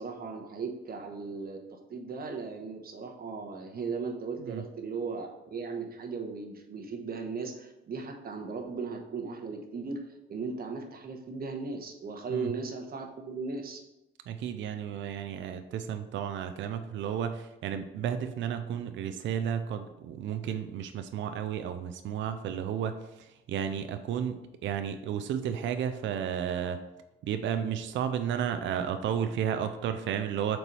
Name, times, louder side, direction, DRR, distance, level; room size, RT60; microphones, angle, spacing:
voice 1, 0.0-13.8, right 4 dB, 50° right, 3 dB, 1.1 m, -37 dB
voice 2, 14.3-26.8 27.2-30.6, right 8 dB, 70° right, 8 dB, 0.5 m, -33 dB
4.5 x 4.0 x 5.4 m, 0.94 s
cardioid pair, 90°, 20 cm